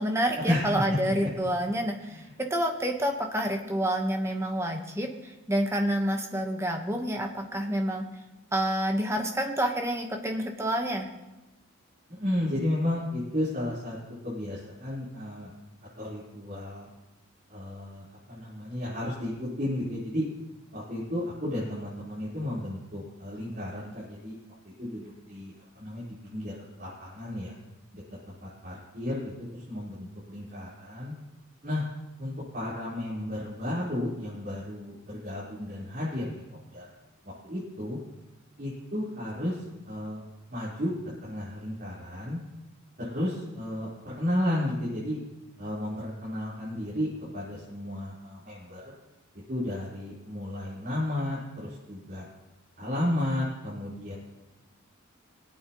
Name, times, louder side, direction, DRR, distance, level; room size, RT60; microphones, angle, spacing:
voice 1, 0.0-8.0 8.5-11.1, right 1 dB, 15° right, 3 dB, 1.2 m, -28 dB
voice 2, 12.1-14.0 14.2-15.5 16.0-16.9 17.5-20.2 20.7-24.3 24.8-26.1 26.3-26.5 26.8-27.5 27.9-28.0 28.4-31.1 31.6-31.8 32.2-36.4 36.7-36.8 37.4-38.0 38.6-40.2 40.5-40.9 41.2-42.4 43.0-43.9 44.2-45.2 45.6-48.8 49.5-52.3 52.8-54.1, left 1 dB, 45° right, -9 dB, 4.2 m, -33 dB
24.5 x 8.7 x 3.1 m, 1.0 s
head